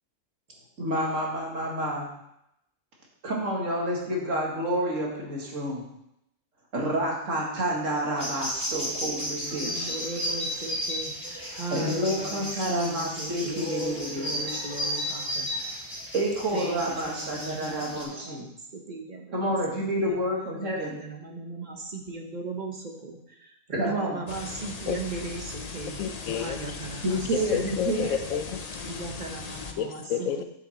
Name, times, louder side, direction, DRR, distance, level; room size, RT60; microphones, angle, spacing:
voice 1, 0.8-2.1 3.2-5.8 6.7-10.0 11.7-14.6 16.1-18.5 19.3-20.9 23.7-24.3 27.0-28.2, right 1 dB, 60° right, -2 dB, 2.1 m, -29 dB
sound 1, 8.2-18.0, equal, 5° left, 3.2 m, -34 dB
voice 2, 9.5-12.5 12.9-15.5 16.5-16.8 17.1-19.8 20.1-20.2 20.7-22.7 23.0-23.2 23.7-26.0 26.4-27.2 27.5-27.6 28.9-30.0 30.4-30.5, right 3 dB, 35° right, 3 dB, 1.0 m, -38 dB
sound 2, 24.3-29.7, left 4 dB, 40° left, 0.6 m, -39 dB
voice 3, 26.0-26.8 27.3-28.5 29.8-30.5, left 8 dB, 75° left, 9 dB, 1.0 m, -30 dB
7.8 x 6.9 x 4.2 m, 0.81 s
omnidirectional pair, 1.5 m